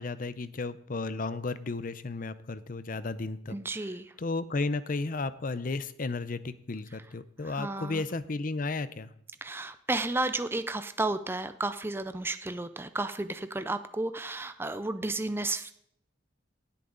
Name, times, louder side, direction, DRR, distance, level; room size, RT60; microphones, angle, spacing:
voice 1, 0.0-9.1, left 3 dB, 45° left, 15 dB, 0.6 m, -34 dB
voice 2, 3.5-4.1 7.4-8.0 9.4-15.7, right 2 dB, 10° right, 11 dB, 0.4 m, -32 dB
17.0 x 8.6 x 3.9 m, 0.71 s
head